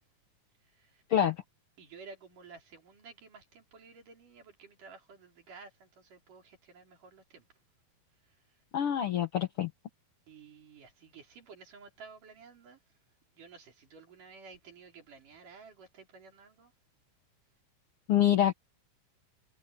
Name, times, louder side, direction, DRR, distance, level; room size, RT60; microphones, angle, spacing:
voice 1, 0.6-1.0 1.8-7.5 8.2-8.4 10.3-12.8 13.4-16.7, right 5 dB, 70° right, 5.8 m, -53 dB
voice 2, 8.7-9.7 18.1-18.5, left 10 dB, 65° left, 1.4 m, -26 dB
omnidirectional pair, 3.8 m